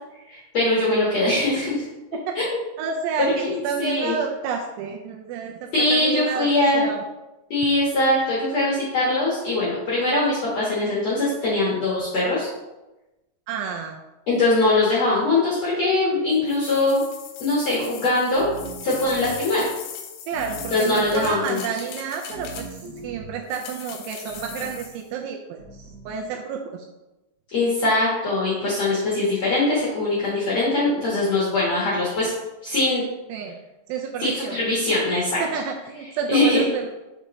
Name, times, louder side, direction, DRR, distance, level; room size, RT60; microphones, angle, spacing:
voice 1, 0.3-1.8 2.3-2.6 3.4-3.5 3.8-4.1 5.7-6.9 7.5-12.5 14.3-17.0 17.4-18.5 18.8-19.7 20.7-21.6 27.5-32.3 32.6-33.0 34.2-35.4 36.3-36.6, left 2 dB, 65° left, -7 dB, 1.7 m, -22 dB
voice 2, 2.8-3.3 3.6-7.0 13.5-14.0 20.3-26.9 33.3-33.6 33.9-34.6 35.4-36.9, right 6 dB, 80° right, 1 dB, 2.5 m, -30 dB
sound 1, 16.5-23.0 23.5-25.0, left 7 dB, 80° left, 2.3 m, -39 dB
sound 2, 18.3-19.5 20.3-21.4 22.3-23.4 24.3-24.9 25.6-26.2, right 3 dB, 60° right, 1.4 m, -40 dB
6.2 x 5.6 x 3.1 m, 1.0 s
omnidirectional pair, 5.2 m